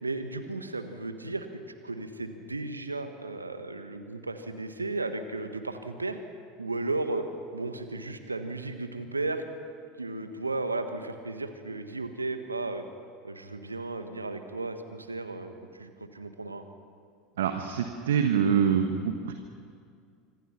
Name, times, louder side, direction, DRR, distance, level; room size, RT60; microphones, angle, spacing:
voice 1, 0.0-1.5 1.8-6.2 6.6-7.2 7.5-9.4 10.0-12.8 13.2-16.6, right 2 dB, 90° right, 8 dB, 1.6 m, -34 dB
voice 2, 17.4-19.3, right 7 dB, 70° right, 6 dB, 1.4 m, -25 dB
26.0 x 25.0 x 6.0 m, 2.2 s
figure-of-eight pair, 75°, 0 cm